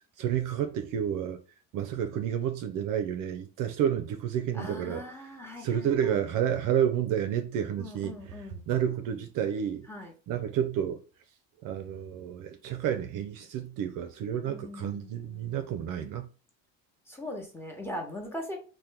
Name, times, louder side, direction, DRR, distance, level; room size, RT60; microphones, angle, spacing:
voice 1, 0.2-1.4 1.7-5.0 5.6-8.4 8.7-9.9 10.3-11.0 11.6-16.3, right 9 dB, 55° right, 0.5 m, -30 dB
voice 2, 4.5-6.2 7.8-8.6 9.9-10.1 14.5-15.7 17.1-18.6, left 1 dB, 5° left, 1.0 m, -40 dB
2.8 x 2.2 x 3.3 m
supercardioid pair, 80°, 39 cm